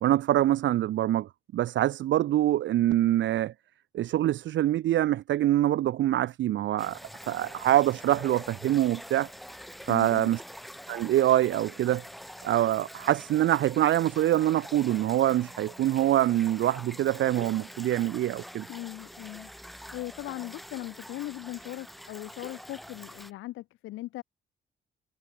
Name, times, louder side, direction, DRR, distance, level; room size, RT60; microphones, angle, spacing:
voice 1, 0.0-3.5 3.9-7.0 7.3-9.3 9.9-10.4 10.9-12.0 12.4-18.7, right 13 dB, 70° right, 0.7 m, -25 dB
sound 1, 6.8-23.3, equal, ahead, 1.6 m, -45 dB
voice 2, 9.9-10.3 18.7-19.5 19.9-24.2, left 17 dB, 90° left, 0.9 m, -39 dB
cardioid pair, 90°, 20 cm